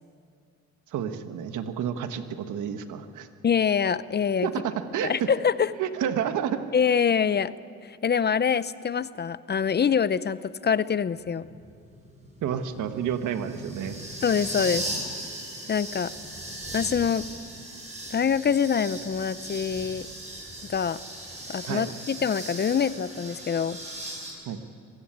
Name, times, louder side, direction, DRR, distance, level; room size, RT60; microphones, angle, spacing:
voice 1, 0.9-3.3 4.4-5.3 5.8-6.6 12.4-14.0 21.7-21.9 24.4-24.6, right 9 dB, 80° right, 8 dB, 1.5 m, -30 dB
voice 2, 3.4-4.5 5.0-5.7 6.7-7.5 7.8-11.5 14.2-14.9 15.7-16.1 16.7-17.2 18.1-20.1 20.7-21.0 21.5-23.8, left 7 dB, 35° left, 16 dB, 0.6 m, -25 dB
sound 1, 11.2-24.3, right 1 dB, 25° right, 6.5 m, -38 dB
25.5 x 15.5 x 8.9 m, 2.4 s
cardioid pair, 90°, 30 cm